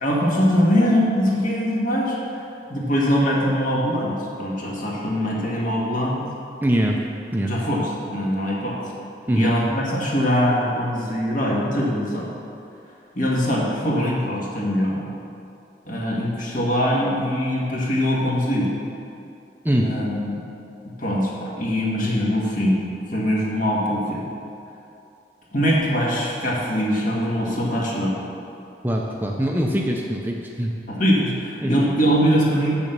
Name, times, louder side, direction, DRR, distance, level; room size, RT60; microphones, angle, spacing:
voice 1, 0.0-2.4 2.7-6.2 7.5-8.8 9.3-12.3 13.2-15.1 15.8-18.7 19.8-20.4 21.0-22.8 23.1-24.3 25.5-28.2 30.9-32.8, equal, 50° left, -4 dB, 1.8 m, -22 dB
voice 2, 6.6-7.0 7.3-7.5 9.3-9.5 19.6-19.9 28.8-30.7 31.6-31.8, right 1 dB, 10° right, -1 dB, 0.6 m, -22 dB
7.3 x 7.0 x 6.7 m, 2.6 s
head